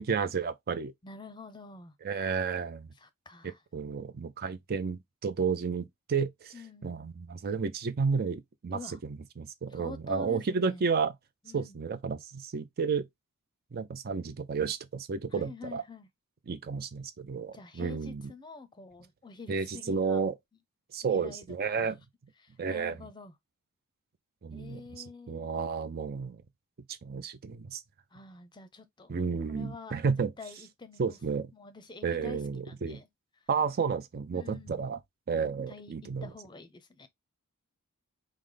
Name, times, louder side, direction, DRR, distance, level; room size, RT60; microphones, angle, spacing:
voice 1, 0.0-0.9 2.0-2.9 3.4-6.5 6.8-11.1 11.5-13.1 13.7-15.8 16.5-18.3 19.5-20.3 20.9-22.0 22.6-22.9 24.4-26.4 27.0-27.8 29.1-30.3 31.0-31.5 32.0-33.0 33.5-35.0 35.3-36.3, right 5 dB, 45° right, 0.4 m, -32 dB
voice 2, 1.0-1.9 3.0-3.6 6.5-7.1 8.7-9.0 9.7-10.9 11.4-11.8 15.3-16.1 17.5-20.2 21.0-21.9 22.4-23.3 24.5-25.5 28.1-29.2 29.5-30.0 30.4-31.2 31.5-33.1 34.3-34.9 35.7-37.1, left 3 dB, 20° left, 0.6 m, -47 dB
4.9 x 2.1 x 3.8 m
head